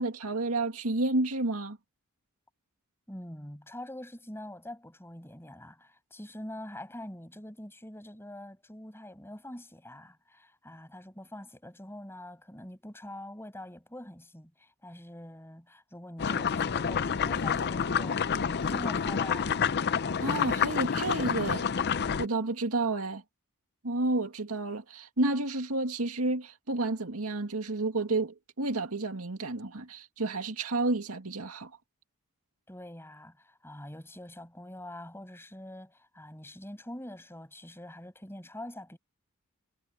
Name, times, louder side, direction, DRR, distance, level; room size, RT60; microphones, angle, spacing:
voice 1, 0.0-1.8 20.2-21.7 22.2-23.2 23.8-31.7, right 2 dB, 75° right, 2.2 m, -30 dB
voice 2, 3.1-19.6 32.7-39.0, left 1 dB, 10° left, 7.8 m, -44 dB
sound 1, 16.2-22.3, left 7 dB, 50° left, 0.5 m, -28 dB
head